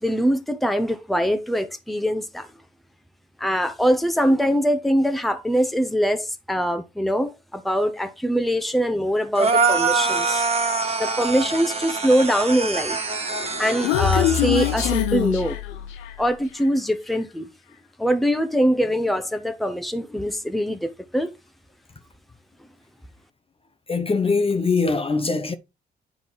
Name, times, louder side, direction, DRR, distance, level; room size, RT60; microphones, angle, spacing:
voice 1, 0.0-2.5 3.4-10.5 11.0-13.0 13.6-15.6 16.2-17.5 18.0-21.3, equal, ahead, 1.1 m, -23 dB
sound 1, 9.3-15.0, right 4 dB, 30° right, 1.6 m, -25 dB
Human voice, 13.3-16.3, left 11 dB, 85° left, 0.8 m, -24 dB
voice 2, 23.9-25.5, left 4 dB, 30° left, 1.0 m, -22 dB
9.5 x 3.8 x 4.7 m
hypercardioid pair, 50°, 19 cm